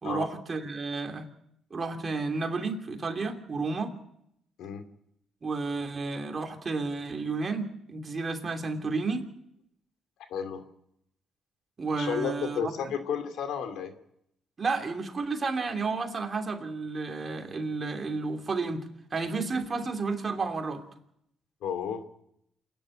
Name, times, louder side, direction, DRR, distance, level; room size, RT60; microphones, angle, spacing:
voice 1, 0.0-1.3 1.7-3.9 5.4-9.3 11.8-12.7 14.6-20.8, right 4 dB, 35° right, 4 dB, 2.9 m, -31 dB
voice 2, 10.3-10.6 11.9-13.9 21.6-22.0, left 7 dB, 80° left, 7 dB, 2.5 m, -32 dB
27.5 x 10.5 x 9.8 m, 0.76 s
cardioid pair, 90°, 0 cm